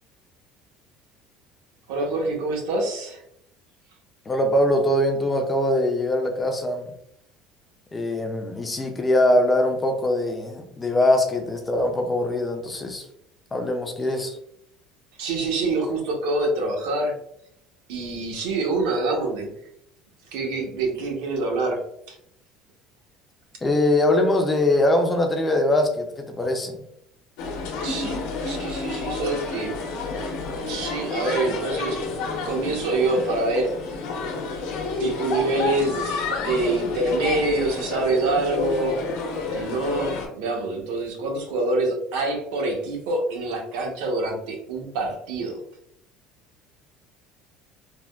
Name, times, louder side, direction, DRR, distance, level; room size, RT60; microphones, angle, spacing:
voice 1, 1.9-3.2 15.2-17.2 17.9-19.5 20.3-21.8 22.1-22.2 27.8-29.8 30.7-32.0 32.4-33.7 35.0-39.0 39.5-45.6, right 2 dB, 80° right, 1 dB, 0.8 m, -26 dB
voice 2, 4.3-6.9 7.9-13.1 13.5-14.4 23.6-26.8, left 1 dB, 10° left, 3 dB, 0.3 m, -22 dB
sound 1, 27.4-40.3, left 3 dB, 90° left, 0.8 m, -30 dB
3.4 x 2.1 x 2.2 m, 0.74 s
cardioid pair, 175°, 0 cm